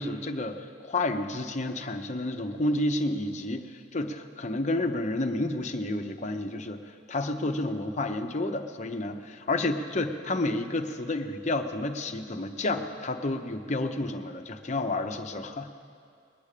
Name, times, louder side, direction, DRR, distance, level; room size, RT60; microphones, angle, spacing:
voice 1, 0.0-6.8 7.1-15.7, left 2 dB, 40° left, 6 dB, 0.8 m, -30 dB
20.0 x 8.7 x 6.7 m, 2.3 s
head